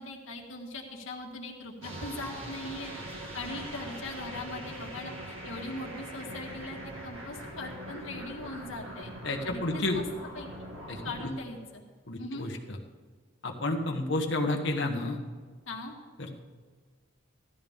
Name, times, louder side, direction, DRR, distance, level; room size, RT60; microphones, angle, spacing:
voice 1, 0.0-2.9 3.3-9.1 9.4-10.0 10.3-10.7 11.0-11.8 12.2-12.5 15.7-15.9, left 2 dB, 80° left, 0 dB, 1.9 m, -40 dB
sound 1, 1.8-11.2, right 1 dB, 80° right, 2.1 m, -42 dB
voice 2, 9.2-10.0 10.9-11.0 12.1-12.5 13.4-15.2 16.2-16.3, left 2 dB, 60° left, 2 dB, 1.5 m, -30 dB
16.0 x 13.0 x 3.7 m, 1.5 s
head